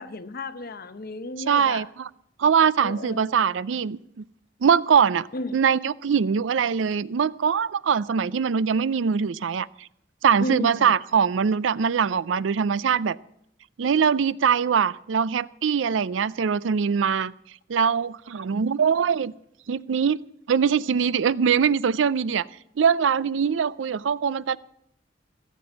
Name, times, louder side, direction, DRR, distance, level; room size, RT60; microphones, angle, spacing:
voice 1, 0.0-1.9 2.8-3.3 5.3-5.6 10.4-10.9, left 2 dB, 55° left, 12 dB, 0.9 m, -33 dB
voice 2, 1.5-2.1 2.4-4.2 4.6-9.9 10.2-13.2 13.8-17.3 17.7-19.3 19.7-20.2 20.5-22.5 22.8-24.6, right 6 dB, 80° right, 20 dB, 0.4 m, -22 dB
16.5 x 7.4 x 8.7 m, 0.74 s
head